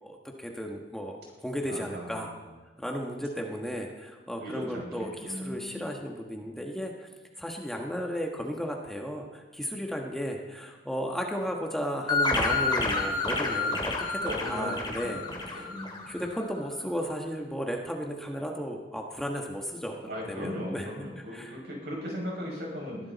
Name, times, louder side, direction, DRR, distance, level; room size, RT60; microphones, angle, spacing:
voice 1, 0.0-2.3 2.8-7.1 7.4-15.7 16.1-20.9 21.2-21.5, equal, ahead, 1 dB, 1.3 m, -34 dB
voice 2, 1.7-2.4 4.4-5.9 14.2-14.7 15.0-16.1 20.1-23.0, equal, 65° right, -2 dB, 6.1 m, -38 dB
sound 1, 12.1-16.4, left 3 dB, 25° left, 2.6 m, -29 dB
22.0 x 15.5 x 4.1 m, 1.3 s
head